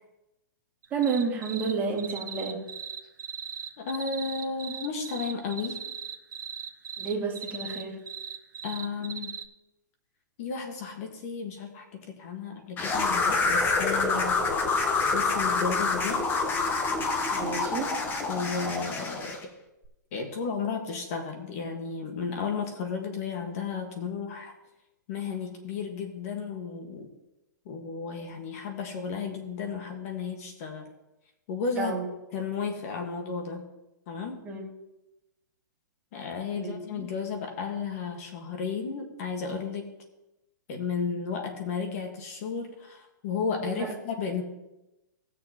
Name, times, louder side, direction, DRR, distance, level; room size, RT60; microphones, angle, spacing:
sound 1, 0.8-1.7 2.0-9.5, right 8 dB, 75° right, 1.1 m, -38 dB
voice 1, 0.9-2.6 7.0-8.0 17.3-17.9 31.8-32.1 34.4-34.6 36.6-37.1 43.6-43.9, right 5 dB, 15° right, -2 dB, 2.2 m, -30 dB
voice 2, 3.8-5.8 8.6-9.4 10.4-14.7 15.1-16.4 18.3-19.5 20.1-24.5 25.1-27.1 27.6-30.9 31.5-31.9 32.3-33.6 34.1-34.4 36.1-39.9 40.7-44.4, left 5 dB, 50° left, 4 dB, 1.6 m, -33 dB
sound 2, 12.8-19.4, left 3 dB, 20° left, 1.0 m, -27 dB
18.0 x 6.7 x 3.0 m, 0.95 s
hypercardioid pair, 145°, 10 cm